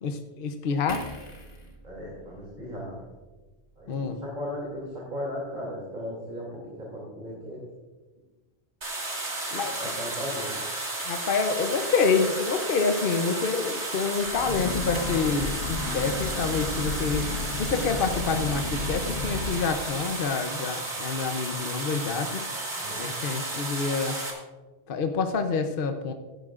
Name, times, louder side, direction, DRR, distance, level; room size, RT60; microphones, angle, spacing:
voice 1, 0.0-1.0 3.9-4.2 9.5-9.7 11.1-17.3 17.6-22.4 23.0-24.1 24.9-26.1, left 5 dB, 55° left, 6 dB, 0.9 m, -27 dB
sound 1, 0.9-4.3 4.6-4.8, left 1 dB, 35° left, 1.6 m, -45 dB
voice 2, 1.8-3.0 3.8-7.6 9.5-10.5 22.7-23.1, left 1 dB, 40° right, -5 dB, 3.1 m, -36 dB
sound 2, 8.8-24.3, right 2 dB, 80° right, 2.5 m, -33 dB
Breathing / Train, 14.2-19.8, left 3 dB, 75° left, 1.3 m, -33 dB
15.5 x 12.0 x 2.5 m, 1.3 s
omnidirectional pair, 1.1 m